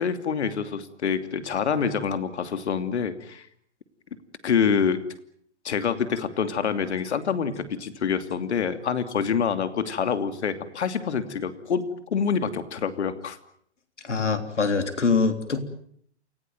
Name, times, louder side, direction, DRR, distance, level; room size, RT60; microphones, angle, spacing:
voice 1, 0.0-3.5 4.4-5.0 5.6-11.8 12.1-13.4, left 6 dB, 70° left, 10 dB, 2.9 m, -26 dB
voice 2, 14.0-15.6, left 4 dB, 90° left, 9 dB, 3.5 m, -24 dB
28.5 x 17.0 x 9.2 m, 0.66 s
hypercardioid pair, 125°, 35 cm